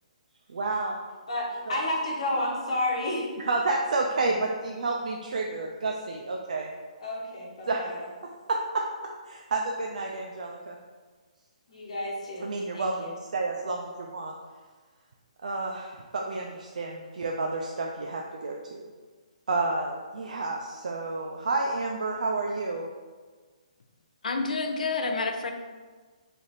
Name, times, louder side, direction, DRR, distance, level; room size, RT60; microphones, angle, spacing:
voice 1, 0.5-1.0 1.7-1.8 3.5-6.7 7.7-7.8 8.5-9.1 9.5-10.8 12.4-14.3 15.4-18.8 19.5-22.9, right 3 dB, 70° right, 0 dB, 0.4 m, -30 dB
voice 2, 1.3-3.3 7.0-8.0 11.7-13.1, left 1 dB, 55° left, -4 dB, 1.0 m, -31 dB
voice 3, 24.2-25.5, left 4 dB, 80° left, 5 dB, 0.5 m, -28 dB
3.1 x 2.5 x 4.0 m, 1.4 s
hypercardioid pair, 175°, 4 cm